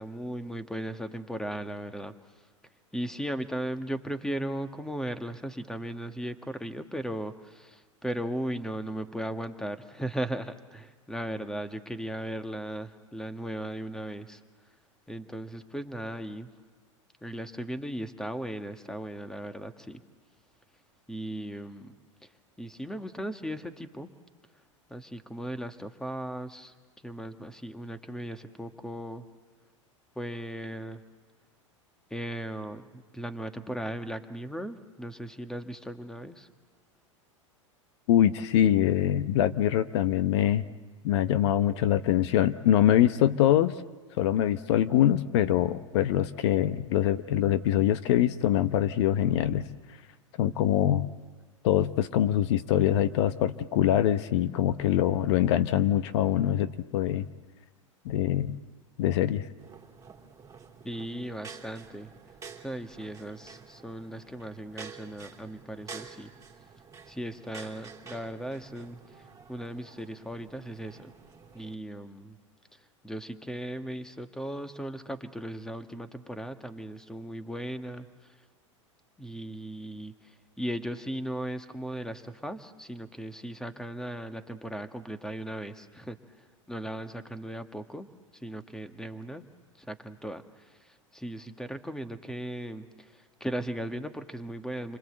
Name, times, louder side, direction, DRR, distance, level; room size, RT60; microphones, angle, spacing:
voice 1, 0.0-2.1 2.9-14.4 15.1-16.5 17.2-20.0 21.1-21.9 22.6-24.1 24.9-26.7 27.0-29.2 30.2-31.0 32.1-36.5 60.8-62.1 62.6-66.3 67.1-71.1 71.5-72.4 73.0-78.1 79.2-86.2 86.7-88.1 88.4-89.4 89.8-95.0, right 1 dB, 5° left, 8 dB, 1.7 m, -37 dB
voice 2, 38.1-40.6 41.0-43.7 44.2-49.7 50.4-51.1 51.6-57.2 58.0-58.6 59.0-59.5, left 11 dB, 60° left, 12 dB, 1.0 m, -24 dB
sound 1, 59.6-71.8, right 5 dB, 20° right, 3.3 m, -49 dB
28.5 x 25.0 x 8.0 m, 1.4 s
hypercardioid pair, 90°, 16 cm